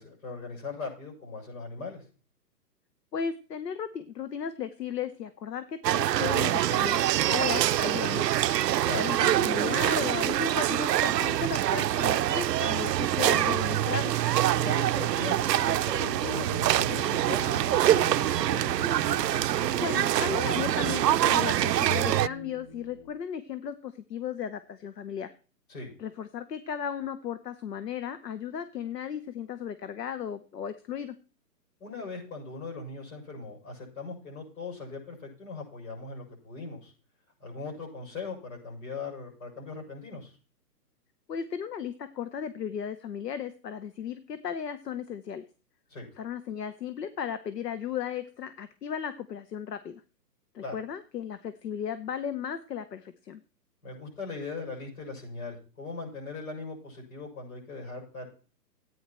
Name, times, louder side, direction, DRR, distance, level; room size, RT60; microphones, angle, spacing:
voice 1, 0.0-2.0 8.8-9.0 14.6-18.7 25.7-25.9 31.8-36.9 37.4-40.4 45.9-46.1 50.6-50.8 53.8-58.3, left 4 dB, 55° left, -1 dB, 7.5 m, -39 dB
voice 2, 3.1-7.0 7.3-8.4 8.9-14.1 19.7-25.3 26.0-31.2 41.3-45.4 46.2-50.0 50.5-53.4, left 8 dB, 75° left, 12 dB, 1.2 m, -35 dB
sound 1, 5.8-22.3, right 13 dB, 80° right, 0.5 m, -25 dB
sound 2, 16.0-23.1, equal, 40° left, 3.1 m, -41 dB
14.0 x 9.3 x 4.4 m, 0.38 s
hypercardioid pair, 150°, 49 cm